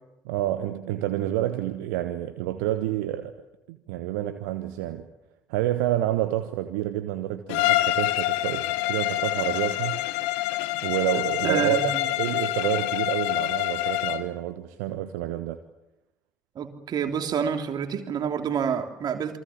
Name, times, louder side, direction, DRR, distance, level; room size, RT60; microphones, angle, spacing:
voice 1, 0.2-3.4 3.7-5.1 5.5-10.0 10.8-15.6, right 13 dB, 65° right, 1.3 m, -28 dB
Bowed string instrument, 7.5-14.3, left 17 dB, 65° left, 1.2 m, -26 dB
voice 2, 11.4-12.1 16.5-19.4, right 7 dB, 45° right, 3.3 m, -28 dB
28.5 x 24.0 x 7.4 m
figure-of-eight pair, 50°, 9 cm